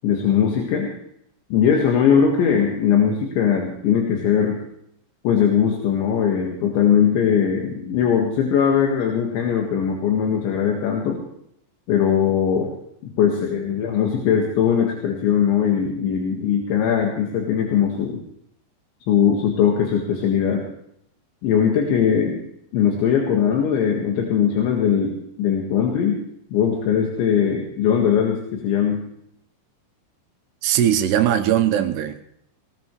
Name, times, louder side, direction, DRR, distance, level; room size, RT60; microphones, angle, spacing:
voice 1, 0.0-0.9 1.5-4.6 5.2-11.2 11.9-12.7 13.2-18.2 19.1-20.6 21.4-22.4 22.7-26.2 26.5-29.0, left 8 dB, 75° left, 0 dB, 4.0 m, -20 dB
voice 2, 30.6-32.3, right 10 dB, 75° right, 6 dB, 2.8 m, -20 dB
19.5 x 19.0 x 3.2 m, 0.73 s
omnidirectional pair, 5.4 m